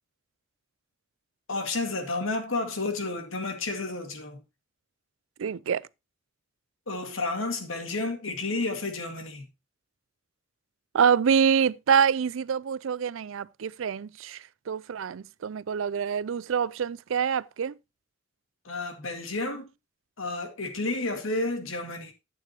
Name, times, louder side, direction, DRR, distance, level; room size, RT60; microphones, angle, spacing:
voice 1, 1.5-4.4 6.9-9.5 18.6-19.7 20.2-22.1, left 2 dB, 90° left, 2.0 m, -31 dB
voice 2, 5.4-5.8 10.9-17.7, right 7 dB, 75° right, 0.4 m, -26 dB
11.0 x 8.6 x 2.9 m
head